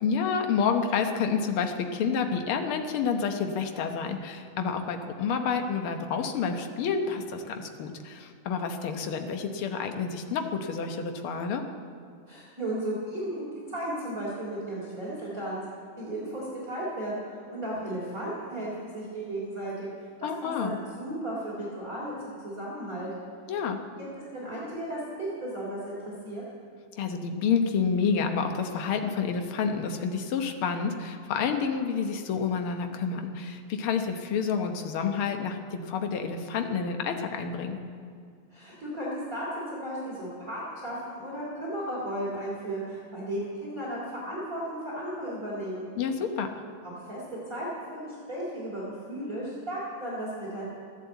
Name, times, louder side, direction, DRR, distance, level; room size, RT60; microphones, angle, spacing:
voice 1, 0.0-11.6 20.2-20.8 23.5-23.8 27.0-37.8 46.0-46.5, left 6 dB, 65° left, 5 dB, 1.4 m, -29 dB
voice 2, 12.3-15.6 16.0-19.9 20.2-23.1 24.0-24.1 24.3-26.4 38.5-45.9 46.8-50.6, right 1 dB, 25° right, -6 dB, 3.5 m, -35 dB
15.0 x 11.5 x 8.2 m, 2.3 s
omnidirectional pair, 3.7 m